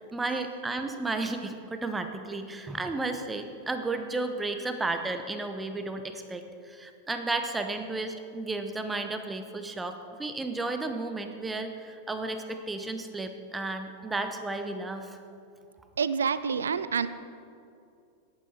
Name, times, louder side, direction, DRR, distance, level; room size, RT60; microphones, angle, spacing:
voice 1, 0.1-15.2, right 2 dB, 10° right, 7 dB, 0.9 m, -33 dB
voice 2, 16.0-17.1, right 6 dB, 70° right, 14 dB, 0.5 m, -27 dB
17.5 x 8.9 x 4.3 m, 2.5 s
figure-of-eight pair, 90°, 0 cm